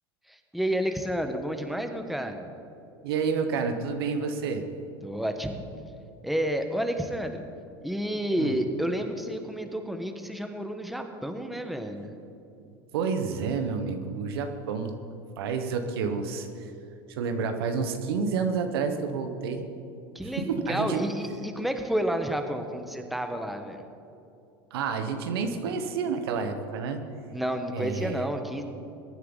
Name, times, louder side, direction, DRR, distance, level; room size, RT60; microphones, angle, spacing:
voice 1, 0.3-2.5 5.0-5.6 6.2-7.4 7.8-12.1 20.1-23.8 27.3-28.6, equal, ahead, 5 dB, 1.3 m, -30 dB
voice 2, 3.0-4.6 8.4-8.6 12.9-14.9 15.4-16.7 17.1-19.6 20.4-21.0 24.7-27.0 27.7-28.2, right 5 dB, 80° right, 7 dB, 1.3 m, -29 dB
22.0 x 9.4 x 4.0 m, 2.7 s
hypercardioid pair, 90°, 13 cm